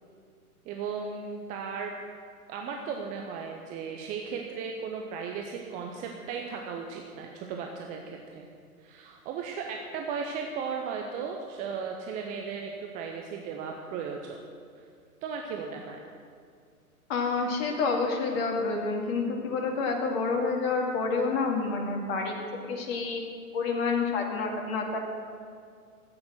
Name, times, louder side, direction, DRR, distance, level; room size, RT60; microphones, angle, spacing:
voice 1, 0.7-1.9 2.5-8.5 8.8-14.4 14.8-14.9 15.2-16.1, right 5 dB, 15° right, 2 dB, 0.7 m, -36 dB
voice 2, 17.1-22.4 22.7-23.2 23.5-25.0, left 4 dB, 40° left, 1 dB, 2.1 m, -28 dB
13.5 x 8.8 x 7.9 m, 2.2 s
figure-of-eight pair, 115°, 45 cm